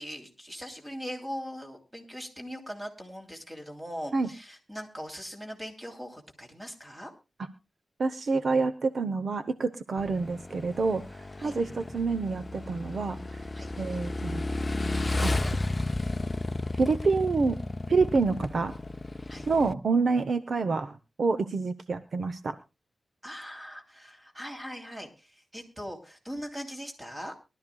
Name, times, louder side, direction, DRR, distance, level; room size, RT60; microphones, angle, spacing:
voice 1, 0.0-7.1 11.4-11.6 13.5-13.7 19.3-19.5 23.2-27.3, equal, 15° right, 2 dB, 3.0 m, -40 dB
voice 2, 8.0-13.4 13.8-14.4 15.2-15.3 16.8-17.6 17.9-18.8 19.5-22.6, right 4 dB, 60° right, 11 dB, 0.7 m, -27 dB
Motorcycle / Engine, 10.0-19.7, left 2 dB, 30° left, 0.6 m, -33 dB
23.0 x 12.5 x 2.3 m, 0.27 s
wide cardioid pair, 110°, 0 cm